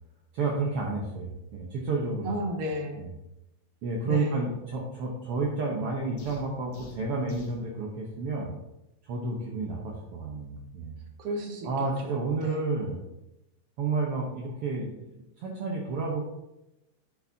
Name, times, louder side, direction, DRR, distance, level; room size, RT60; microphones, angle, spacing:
voice 1, 0.3-2.3 3.0-3.1 3.8-8.5 9.0-10.9 11.6-13.0 13.8-16.2, right 3 dB, 65° right, -2 dB, 1.4 m, -31 dB
voice 2, 2.2-3.0 4.0-4.5 11.2-11.7 12.0-12.7, equal, 85° right, 2 dB, 3.0 m, -33 dB
sound 1, 6.2-7.6, left 3 dB, 60° left, 2.3 m, -48 dB
10.0 x 6.9 x 2.8 m, 0.92 s
omnidirectional pair, 3.9 m